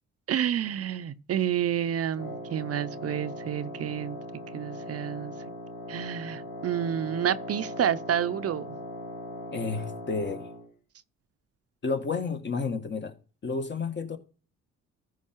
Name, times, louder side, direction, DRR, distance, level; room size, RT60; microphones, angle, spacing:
voice 1, 0.3-4.2 4.5-5.3 5.9-8.8, right 10 dB, 55° right, 0.6 m, -29 dB
Wind instrument woodwind instrument, 2.1-10.7, equal, 75° left, 2.3 m, -39 dB
voice 2, 9.5-10.5 11.8-13.1 13.4-14.2, left 4 dB, 35° left, 1.7 m, -31 dB
14.0 x 5.2 x 4.5 m
cardioid pair, 90°, 30 cm